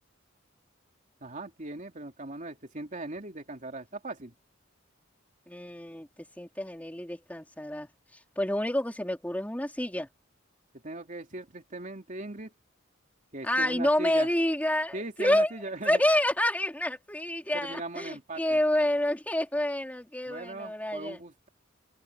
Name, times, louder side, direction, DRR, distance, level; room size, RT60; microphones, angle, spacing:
voice 1, 1.2-4.3 10.7-12.5 13.3-14.3 14.9-16.0 17.5-18.6 20.3-21.5, right 2 dB, 40° right, 3.1 m, -39 dB
voice 2, 5.5-6.1 6.4-7.9 8.4-10.1 13.4-15.5 15.8-21.2, left 1 dB, 10° left, 3.9 m, -28 dB
open air
head